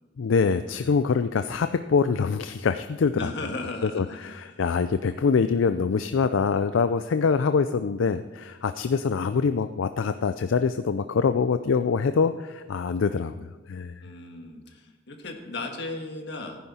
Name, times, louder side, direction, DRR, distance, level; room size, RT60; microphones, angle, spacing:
voice 1, 0.2-3.3 3.8-14.0, left 5 dB, 80° left, 10 dB, 0.4 m, -24 dB
voice 2, 3.1-4.6 14.0-16.6, left 2 dB, 60° left, 3 dB, 1.6 m, -36 dB
15.0 x 10.0 x 4.3 m, 1.2 s
head